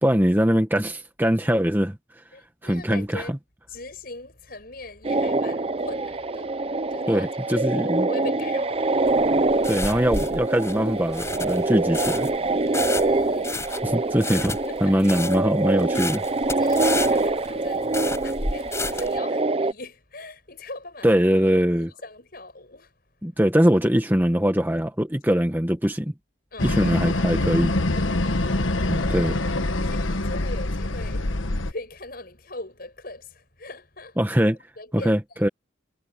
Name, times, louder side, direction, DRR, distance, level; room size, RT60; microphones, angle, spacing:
voice 1, 0.0-2.0 2.6-3.4 7.1-8.1 9.7-12.3 13.8-16.2 21.0-21.9 23.2-26.1 26.6-27.7 28.9-29.4 34.2-34.6 34.9-35.5, equal, 10° right, 1.4 m, -22 dB
voice 2, 2.3-3.3 3.7-6.6 6.9-9.1 12.6-13.8 14.4-15.0 16.6-21.1 22.0-22.9 26.5-27.0 28.0-29.6 29.8-31.3 31.7-34.2 34.8-35.4, left 2 dB, 50° left, 7.9 m, -40 dB
sound 1, 5.1-19.7, right 2 dB, 30° right, 0.6 m, -25 dB
sound 2, 9.1-19.2, left 3 dB, 15° left, 5.0 m, -32 dB
sound 3, 26.6-31.7, left 2 dB, 85° left, 1.4 m, -25 dB
head